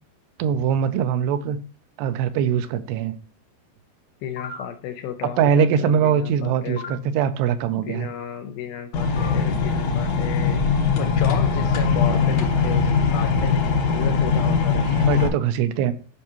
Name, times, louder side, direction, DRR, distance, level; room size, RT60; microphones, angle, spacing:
voice 1, 0.4-1.6 2.0-3.2 5.4-8.1 12.1-12.2 14.8-15.9, right 8 dB, 85° right, 2.7 m, -22 dB
voice 2, 4.2-7.1 7.8-10.6 11.0-15.1, left 9 dB, 85° left, 2.1 m, -33 dB
sound 1, 4.4-4.6 6.8-6.9 9.2-9.3 11.6-12.1, left 6 dB, 50° left, 0.8 m, -35 dB
sound 2, 8.9-15.3, left 5 dB, 70° left, 1.6 m, -21 dB
10.5 x 5.4 x 3.0 m
omnidirectional pair, 4.9 m